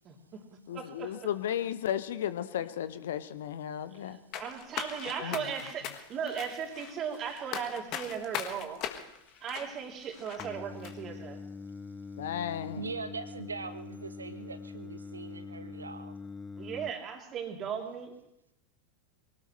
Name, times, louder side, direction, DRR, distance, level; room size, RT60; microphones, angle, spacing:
voice 1, 0.1-0.4 0.7-1.1 4.3-8.8 9.4-11.4 16.6-18.1, right 7 dB, 35° right, 2 dB, 3.2 m, -37 dB
voice 2, 0.7-4.2 5.2-5.4 12.2-12.9, left 10 dB, 65° left, 13 dB, 0.8 m, -34 dB
sound 1, 4.3-10.5 10.8-10.9, left 10 dB, 45° left, 1.6 m, -40 dB
Singing, 10.4-16.9, left 4 dB, 20° left, 0.6 m, -44 dB
voice 3, 12.7-16.2, right 4 dB, 80° right, 11 dB, 1.1 m, -41 dB
23.5 x 18.0 x 3.3 m, 0.85 s
figure-of-eight pair, 85°, 0 cm